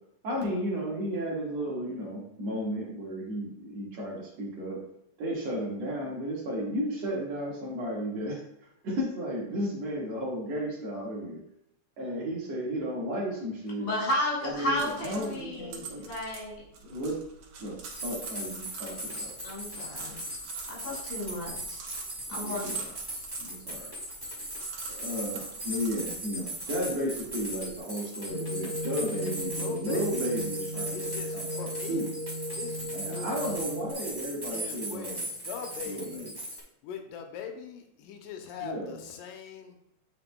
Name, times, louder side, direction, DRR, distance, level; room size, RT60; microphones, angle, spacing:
voice 1, 0.2-4.8 5.2-11.4 12.0-13.9 14.4-16.0 16.9-17.2 17.6-17.8 18.0-19.3 22.3-22.9 23.4-23.9 24.9-31.1 31.3-32.1 32.9-35.3 35.9-36.3 38.6-39.0, equal, 60° right, -4 dB, 2.5 m, -34 dB
voice 2, 13.8-16.6 19.4-20.2 20.7-21.8 22.3-22.6, left 1 dB, 60° left, -5 dB, 3.6 m, -33 dB
sound 1, 14.5-27.8, right 5 dB, 80° right, 2.7 m, -46 dB
sound 2, 17.9-36.6, right 1 dB, 20° right, 0.5 m, -38 dB
sound 3, 28.3-33.9, equal, 40° left, 2.8 m, -36 dB
voice 3, 29.0-30.4 30.9-32.1 32.5-33.6 34.5-36.3 36.8-39.8, left 7 dB, 85° left, 4 dB, 2.3 m, -41 dB
8.8 x 5.7 x 2.2 m, 0.78 s
omnidirectional pair, 3.7 m